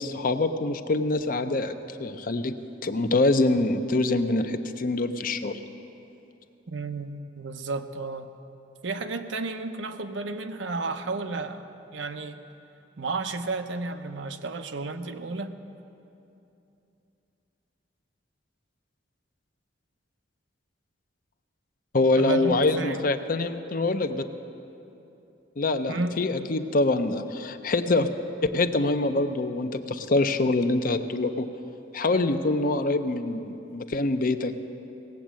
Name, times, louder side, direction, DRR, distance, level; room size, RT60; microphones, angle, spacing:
voice 1, 0.0-2.5 2.8-5.6 21.9-24.2 25.6-28.1 28.5-31.5 31.9-34.5, left 2 dB, 50° left, 9 dB, 0.6 m, -25 dB
voice 2, 6.7-8.3 8.8-12.4 13.0-15.6 22.2-23.0 25.9-26.2, right 3 dB, 85° right, 7 dB, 0.7 m, -32 dB
18.0 x 8.1 x 7.5 m, 2.8 s
head